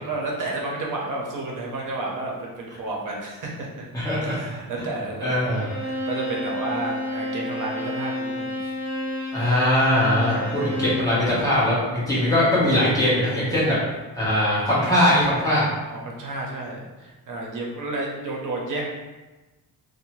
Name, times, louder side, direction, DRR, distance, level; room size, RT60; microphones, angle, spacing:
voice 1, 0.0-3.8 4.2-5.6 5.8-8.7 10.2-10.8 13.6-13.8 15.9-18.9, right 2 dB, 55° right, -2 dB, 0.7 m, -31 dB
voice 2, 3.9-4.4 5.2-5.7 9.3-13.8 14.2-15.7, left 1 dB, 10° left, -9 dB, 0.9 m, -21 dB
Bowed string instrument, 5.5-11.2, left 1 dB, 20° right, 1.2 m, -30 dB
2.6 x 2.1 x 2.9 m, 1.1 s
wide cardioid pair, 155°, 37 cm